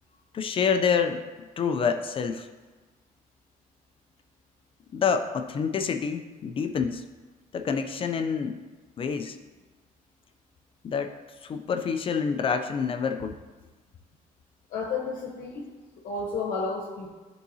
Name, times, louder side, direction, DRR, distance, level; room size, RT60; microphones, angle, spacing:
voice 1, 0.3-2.5 4.9-7.0 7.5-8.6 9.0-9.4 10.8-11.1 11.4-13.4, left 6 dB, 40° left, 6 dB, 0.4 m, -27 dB
voice 2, 14.7-15.7 16.0-17.1, left 4 dB, 70° left, -1 dB, 1.0 m, -32 dB
11.5 x 3.8 x 2.7 m, 1.3 s
cardioid pair, 130°, 15 cm